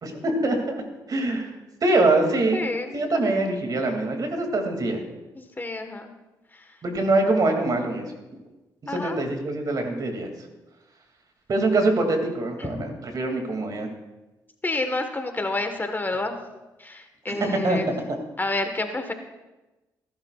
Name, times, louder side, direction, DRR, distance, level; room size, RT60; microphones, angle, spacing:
voice 1, 0.0-0.8 1.1-1.5 1.8-2.6 2.9-5.0 6.8-8.1 8.8-10.3 11.5-13.9 17.3-17.8, right 2 dB, 50° right, 4 dB, 2.5 m, -24 dB
voice 2, 2.5-3.3 5.4-6.1 8.9-9.2 12.6-12.8 14.6-16.4 16.8-17.9 18.4-19.1, left 2 dB, 25° left, 6 dB, 1.4 m, -29 dB
18.5 x 11.5 x 2.4 m, 1.1 s
supercardioid pair, 60°, 8 cm